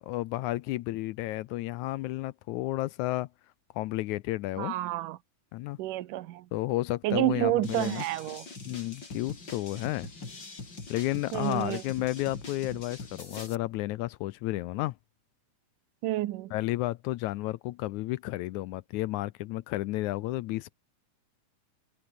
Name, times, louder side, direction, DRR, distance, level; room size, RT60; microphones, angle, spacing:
voice 1, 0.0-3.3 3.8-4.8 5.5-5.8 6.5-8.0 8.7-10.1 10.9-15.0 16.5-20.8, left 17 dB, 75° left, 1.9 m, -32 dB
voice 2, 4.6-5.2 5.8-6.5 7.0-8.5 11.3-11.8 16.0-16.5, right 15 dB, 80° right, 2.5 m, -29 dB
sound 1, 7.6-13.5, left 3 dB, 35° left, 5.4 m, -43 dB
omnidirectional pair, 3.7 m